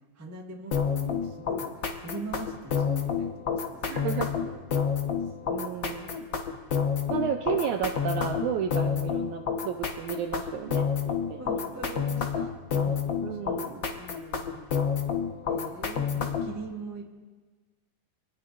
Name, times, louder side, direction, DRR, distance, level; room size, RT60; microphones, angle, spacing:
voice 1, 0.1-5.5 5.9-6.1 6.6-6.8 7.6-7.7 11.4-13.0 13.3-15.0 15.5-17.3, right 3 dB, 20° right, -1 dB, 0.4 m, -43 dB
sound 1, 0.7-16.6, left 7 dB, 80° left, 1.0 m, -29 dB
voice 2, 3.9-4.3 5.5-6.3 7.1-11.4 13.2-13.8, right 8 dB, 80° right, 4 dB, 1.7 m, -32 dB
25.0 x 18.5 x 2.6 m, 1.4 s
omnidirectional pair, 4.1 m